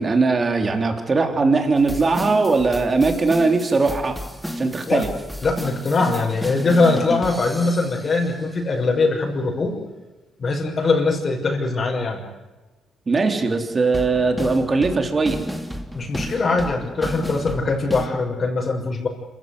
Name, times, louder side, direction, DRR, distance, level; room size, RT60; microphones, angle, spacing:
voice 1, 0.0-4.2 4.6-5.1 13.1-15.4, right 3 dB, 35° right, 4 dB, 3.8 m, -20 dB
sound 1, 1.8-8.4 13.9-18.1, equal, ahead, 2.6 m, -32 dB
voice 2, 5.4-9.8 10.4-12.2 15.9-19.1, left 3 dB, 45° left, 0 dB, 6.2 m, -21 dB
27.0 x 16.0 x 9.8 m, 1.2 s
cardioid pair, 90°, 0 cm